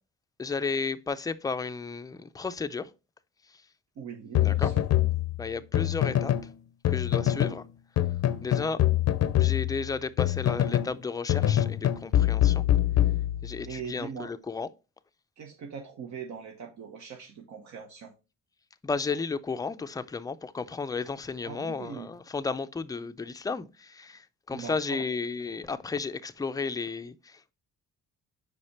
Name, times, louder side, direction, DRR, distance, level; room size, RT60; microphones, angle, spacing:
voice 1, 0.4-2.9 4.4-4.7 5.4-6.3 6.9-7.6 8.4-8.8 9.4-12.6 13.4-14.7 18.8-27.5, left 4 dB, 10° left, 0.4 m, -33 dB
voice 2, 4.0-4.9 9.2-9.4 13.7-14.3 15.4-18.1 21.4-22.1 24.5-25.1, right 6 dB, 70° right, 1.1 m, -41 dB
sound 1, 4.3-6.5 6.8-7.6 8.0-11.0 11.3-13.7, left 12 dB, 60° left, 0.6 m, -25 dB
4.9 x 4.8 x 4.2 m
cardioid pair, 90°, 30 cm